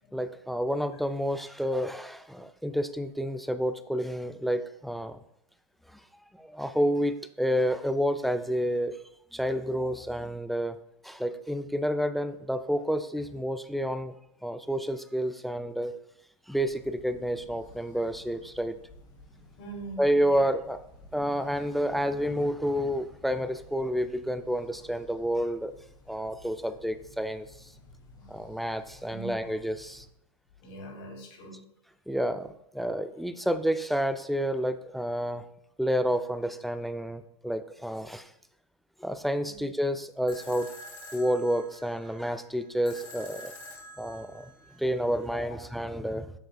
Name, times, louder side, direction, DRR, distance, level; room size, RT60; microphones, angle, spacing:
voice 1, 0.1-5.2 5.9-6.0 6.3-9.0 9.3-10.8 11.0-14.1 14.4-15.9 16.5-18.8 20.0-20.8 21.1-25.7 26.1-27.7 28.3-30.1 32.1-35.4 35.8-38.3 39.0-40.7 41.1-43.5 44.0-46.3, equal, ahead, 11 dB, 0.3 m, -29 dB
sound 1, 16.5-30.1, left 2 dB, 25° left, 1.3 m, -54 dB
voice 2, 19.6-20.5 28.1-28.6 29.1-29.5 30.6-31.6 39.4-39.7 45.3-45.6, right 1 dB, 55° left, 1 dB, 2.2 m, -43 dB
sound 2, 40.3-45.3, left 1 dB, 85° left, 1.9 m, -48 dB
7.7 x 7.1 x 2.2 m, 0.77 s
hypercardioid pair, 105°, 17 cm